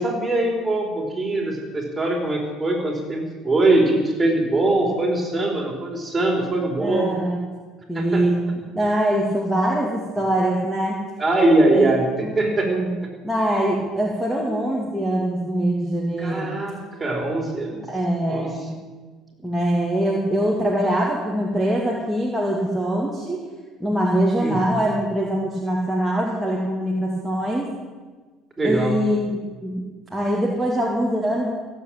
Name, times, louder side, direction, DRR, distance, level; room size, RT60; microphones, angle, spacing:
voice 1, 0.0-7.2 7.9-8.2 11.2-12.7 16.2-17.9 18.3-18.5 24.4-24.8 28.6-29.0, right 2 dB, 15° right, -1 dB, 4.6 m, -22 dB
voice 2, 6.8-7.4 7.9-8.5 8.7-11.0 11.7-13.0 13.2-16.5 17.9-18.7 19.4-23.5 23.8-27.7 28.6-29.8 30.1-31.5, right 1 dB, ahead, -4 dB, 2.4 m, -23 dB
15.5 x 8.1 x 9.0 m, 1.4 s
supercardioid pair, 100°, 0 cm